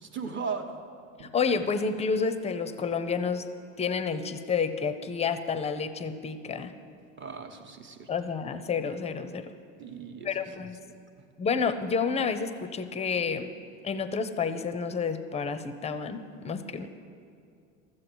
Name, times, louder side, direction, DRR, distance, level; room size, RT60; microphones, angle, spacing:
voice 1, 0.0-0.8 1.2-1.3 7.2-8.1 9.8-10.3, right 5 dB, 30° right, 6 dB, 1.1 m, -37 dB
voice 2, 1.2-3.4 3.8-6.7 8.1-9.4 10.2-10.8 11.4-13.5 13.8-16.9, left 5 dB, 15° left, 11 dB, 0.6 m, -29 dB
13.5 x 7.6 x 6.1 m, 2.5 s
hypercardioid pair, 105°, 40 cm